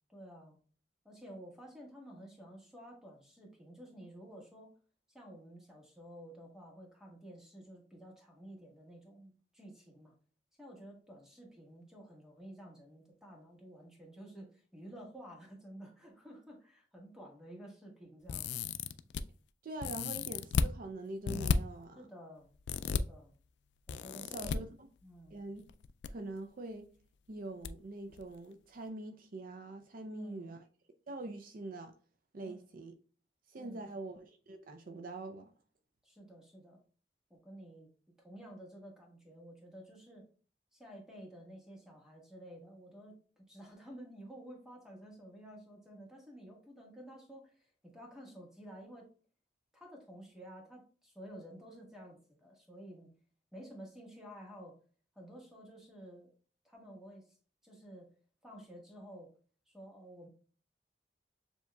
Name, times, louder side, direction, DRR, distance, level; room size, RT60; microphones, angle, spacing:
voice 1, 0.1-0.6 1.0-4.7 5.1-10.1 10.6-18.5 21.9-22.5 22.8-23.3 23.9-24.6 25.0-25.4 30.0-30.6 32.4-32.6 33.6-33.9 36.0-36.8 37.3-40.3 40.7-49.1 49.7-53.1 53.5-54.8 55.1-56.3 56.6-57.3 57.6-58.1 58.4-59.3 59.7-60.3, right 1 dB, 5° right, 1.4 m, -52 dB
sound 1, 18.3-19.2 19.8-20.7 21.3-21.6 22.7-23.0 23.9-24.6 25.7-26.1 26.4-26.5 27.6-27.7 28.1-28.2, left 6 dB, 75° left, 0.3 m, -33 dB
voice 2, 19.6-22.1 24.2-24.9 25.3-25.6 26.1-26.9 27.3-30.6 31.1-31.9 32.3-32.9 33.5-35.5, right 2 dB, 55° right, 0.5 m, -44 dB
6.9 x 2.8 x 2.3 m
head